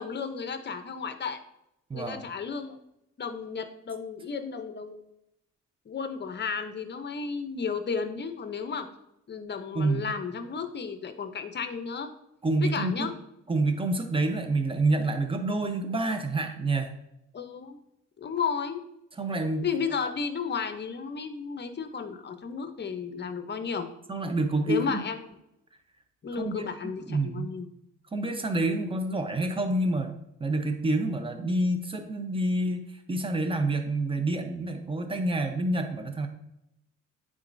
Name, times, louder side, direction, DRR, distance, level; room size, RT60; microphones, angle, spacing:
voice 1, 0.0-1.4 1.9-2.8 3.2-5.1 5.9-8.9 9.3-12.1 12.6-13.1 17.3-17.8 18.2-18.8 19.6-23.9 24.7-25.3 26.2-27.7, left 6 dB, 35° left, 8 dB, 0.8 m, -33 dB
voice 2, 1.9-2.2 9.7-10.1 12.4-13.1 13.5-16.9 19.2-19.7 24.1-25.0 26.4-26.7 27.1-27.5 28.1-36.3, right 2 dB, 20° right, 6 dB, 0.9 m, -28 dB
9.4 x 3.8 x 2.7 m, 0.84 s
cardioid pair, 90°, 30 cm